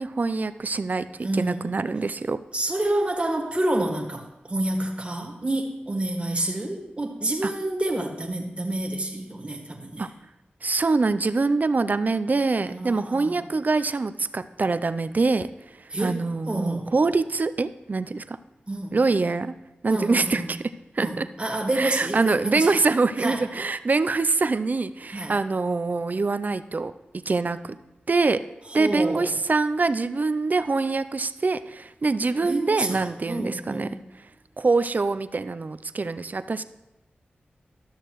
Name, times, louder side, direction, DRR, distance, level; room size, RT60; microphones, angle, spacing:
voice 1, 0.0-2.4 7.4-7.5 10.0-10.1 10.6-18.4 18.9-19.5 19.8-20.6 20.9-21.3 21.7-26.9 27.3-27.8 28.1-28.4 28.7-34.3 34.6-36.6, right 3 dB, 50° right, 13 dB, 0.4 m, -24 dB
voice 2, 1.2-1.7 2.5-10.1 12.6-13.4 15.9-17.0 18.7-19.0 19.9-20.5 21.0-22.8 23.2-23.4 25.1-25.3 28.8-29.3 32.4-33.0 33.3-34.0, right 1 dB, 30° right, 2 dB, 1.8 m, -28 dB
13.0 x 6.5 x 3.1 m, 0.94 s
cardioid pair, 40°, 4 cm